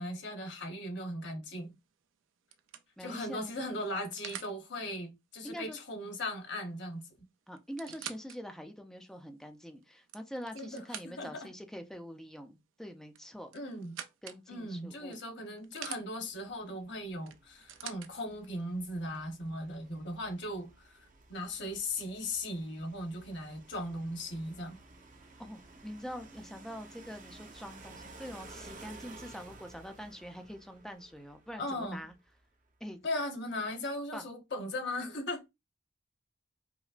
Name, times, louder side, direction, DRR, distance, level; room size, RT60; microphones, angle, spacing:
voice 1, 0.0-1.7 3.0-7.1 10.5-11.5 13.5-14.0 14.5-21.0 21.3-24.8 31.6-32.0 33.0-35.4, left 1 dB, 65° left, 1.0 m, -38 dB
sound 1, 1.6-1.9 2.5-4.6 6.6-6.7 7.0-7.1 7.6-8.4 9.0-9.1 9.8-11.4 13.1-14.4 15.1-16.0 17.3-18.1 19.0-19.1, right 9 dB, 85° right, 0.4 m, -46 dB
voice 2, 3.0-3.5 5.4-5.8 7.5-13.5 14.2-15.2 25.4-32.1 32.8-33.0 34.1-34.3, equal, ahead, 0.4 m, -44 dB
sound 2, 16.3-32.5, right 2 dB, 40° right, 0.7 m, -54 dB
4.9 x 2.0 x 2.4 m
head